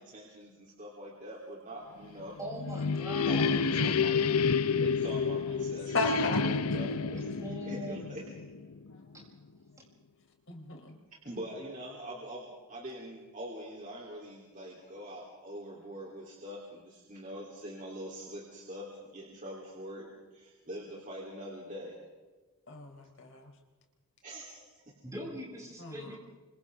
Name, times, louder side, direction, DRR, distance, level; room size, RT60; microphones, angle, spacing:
voice 1, 0.0-2.4 3.1-4.4 4.7-8.2 11.2-22.0 24.2-24.9, equal, 35° right, -4 dB, 3.6 m, -44 dB
sound 1, 2.2-8.9, left 5 dB, 90° left, 0.8 m, -29 dB
voice 2, 2.4-3.5 7.3-8.1 9.1-9.3 9.8-9.9 25.0-26.2, equal, 15° right, -4 dB, 7.8 m, -41 dB
voice 3, 5.9-6.4 10.5-10.9 22.7-23.5 25.8-26.2, left 3 dB, 60° left, 2 dB, 4.1 m, -34 dB
29.0 x 27.0 x 3.8 m, 1.3 s
head